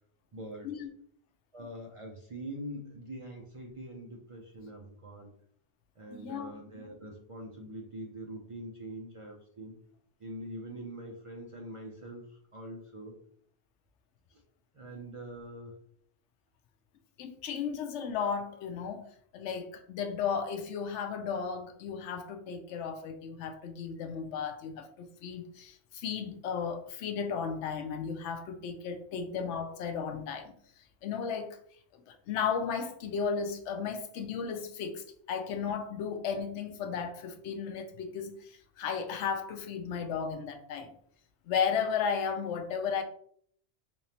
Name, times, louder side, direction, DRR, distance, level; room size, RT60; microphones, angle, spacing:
voice 1, 0.3-0.8 1.5-5.3 6.0-9.8 10.2-13.2 14.3-14.4 14.7-15.7, right 1 dB, 45° right, 0.4 m, -44 dB
voice 2, 6.1-6.5 17.2-19.1 19.3-31.6 32.1-40.9 41.5-43.0, left 6 dB, 85° left, 0.9 m, -34 dB
3.5 x 3.0 x 2.8 m
omnidirectional pair, 1.1 m